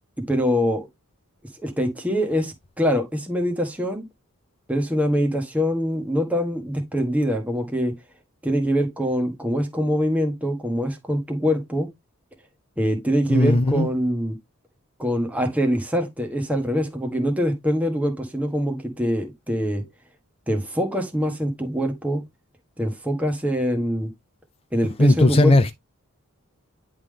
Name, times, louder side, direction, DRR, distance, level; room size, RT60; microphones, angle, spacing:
voice 1, 0.3-0.9 1.6-4.0 4.7-7.9 8.4-11.9 12.8-14.4 15.0-19.8 20.5-22.2 22.8-24.1 24.7-25.5, equal, 5° right, 1.5 m, -24 dB
voice 2, 13.3-13.9 25.0-25.7, left 2 dB, 25° left, 0.5 m, -17 dB
10.0 x 3.7 x 3.4 m
head